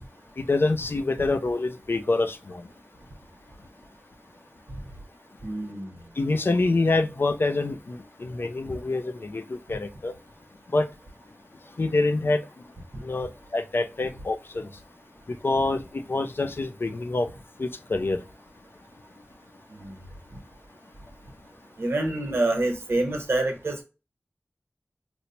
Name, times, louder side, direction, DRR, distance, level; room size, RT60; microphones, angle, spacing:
voice 1, 0.4-2.6 6.2-10.1 10.7-10.9 11.8-12.4 13.0-14.7 15.3-17.3 17.6-18.2, left 3 dB, 60° left, 0.4 m, -26 dB
voice 2, 5.4-5.9 19.7-19.9 21.8-23.8, right 2 dB, 80° right, 1.0 m, -26 dB
4.4 x 2.0 x 2.8 m
wide cardioid pair, 70°, 4 cm